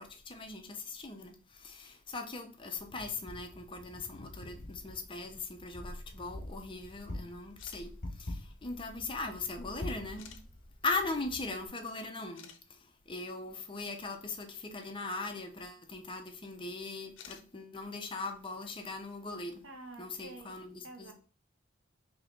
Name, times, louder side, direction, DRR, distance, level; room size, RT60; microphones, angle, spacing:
voice 1, 0.0-10.4 10.8-19.6 20.0-21.1, left 3 dB, 25° left, 0.6 m, -40 dB
Wind, 2.8-11.7, left 1 dB, 55° left, 1.3 m, -46 dB
sound 1, 7.5-7.8 8.9-9.0 10.2-10.4 11.8-11.9 12.3-12.6 15.3-15.4 17.1-17.5, left 8 dB, 85° left, 0.6 m, -51 dB
voice 2, 19.6-20.6 20.8-21.1, right 2 dB, 80° right, 0.9 m, -48 dB
3.9 x 2.8 x 3.5 m
head